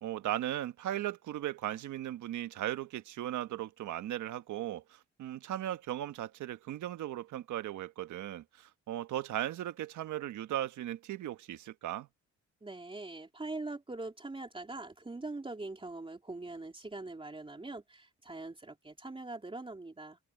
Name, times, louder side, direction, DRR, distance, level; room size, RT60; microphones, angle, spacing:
voice 1, 0.0-12.1, right 13 dB, 75° right, 1.4 m, -37 dB
voice 2, 12.6-20.2, right 2 dB, 15° right, 3.3 m, -42 dB
open air
cardioid pair, 90°, 30 cm